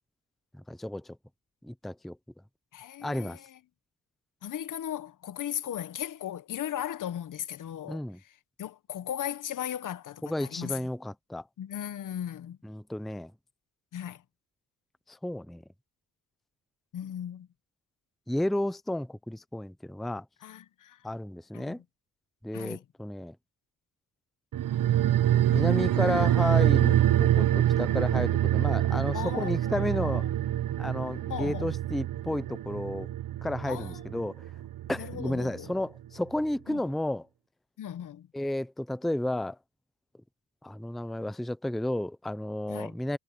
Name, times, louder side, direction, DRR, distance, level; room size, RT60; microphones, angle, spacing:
voice 1, 0.5-1.2 1.6-2.2 3.0-3.4 7.9-8.2 10.2-11.4 12.6-13.3 15.1-15.6 18.3-20.3 21.0-21.8 22.4-23.4 25.5-30.3 30.8-33.1 33.4-34.5 34.9-37.3 38.3-39.6 40.6-43.2, left 1 dB, ahead, 0.6 m, -32 dB
voice 2, 2.7-3.6 4.4-8.0 8.6-10.8 11.6-12.6 13.9-14.2 16.9-17.5 20.4-21.1 21.5-21.8 22.5-22.8 29.1-30.3 31.3-31.7 33.7-34.0 35.0-35.7 36.7-36.8 37.8-38.3 42.7-42.9, left 10 dB, 60° left, 1.0 m, -37 dB
sound 1, 24.5-35.4 35.7-35.8, right 12 dB, 65° right, 1.0 m, -26 dB
cardioid pair, 120°, 36 cm